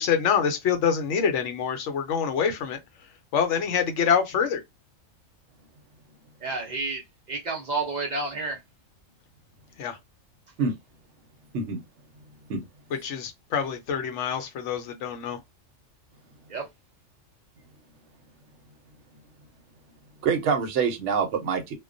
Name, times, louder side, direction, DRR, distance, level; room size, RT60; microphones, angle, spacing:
voice 1, 0.0-2.8 3.3-4.6 9.8-10.0 13.0-15.4, left 7 dB, 70° left, 0.9 m, -25 dB
voice 2, 6.4-7.0 7.3-8.6 16.5-16.6, right 3 dB, 50° right, 0.5 m, -30 dB
voice 3, 20.2-21.7, right 5 dB, 65° right, 0.9 m, -25 dB
2.3 x 2.2 x 2.5 m
omnidirectional pair, 1.4 m